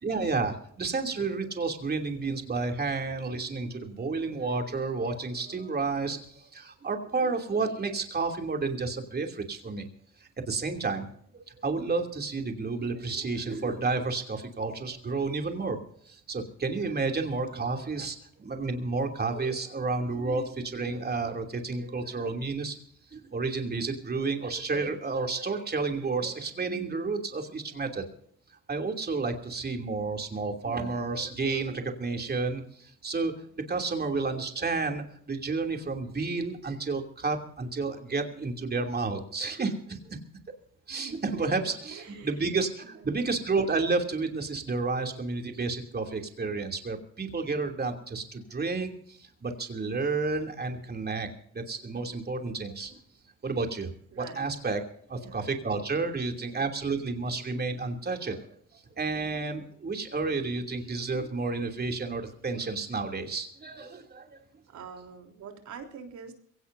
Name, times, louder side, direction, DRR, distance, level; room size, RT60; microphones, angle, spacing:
voice 1, 0.0-9.9 10.5-11.1 11.3-15.8 16.1-22.7 23.1-28.0 28.7-40.2 40.9-51.3 51.5-53.0 53.4-53.9 54.2-54.8 55.1-64.4, right 3 dB, 30° right, 4 dB, 2.8 m, -31 dB
voice 2, 41.0-42.4 42.8-43.1 54.1-54.5 55.1-55.6 64.7-66.3, right 6 dB, 70° right, 4 dB, 3.5 m, -46 dB
22.5 x 17.0 x 2.7 m, 0.63 s
cardioid pair, 90°, 30 cm